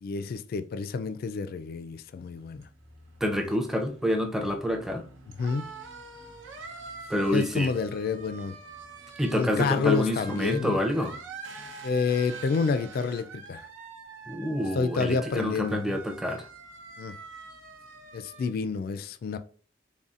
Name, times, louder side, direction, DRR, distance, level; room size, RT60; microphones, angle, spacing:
voice 1, 0.0-2.7 5.4-5.7 7.3-8.5 9.3-10.8 11.8-13.6 14.7-16.0 17.0-17.2 18.1-19.4, left 4 dB, 50° left, 0.3 m, -29 dB
sound 1, 2.1-18.5, right 4 dB, 80° right, 0.8 m, -45 dB
voice 2, 3.2-5.0 7.1-7.7 9.2-11.2 14.3-16.4, equal, ahead, 0.5 m, -27 dB
4.0 x 3.5 x 2.4 m
head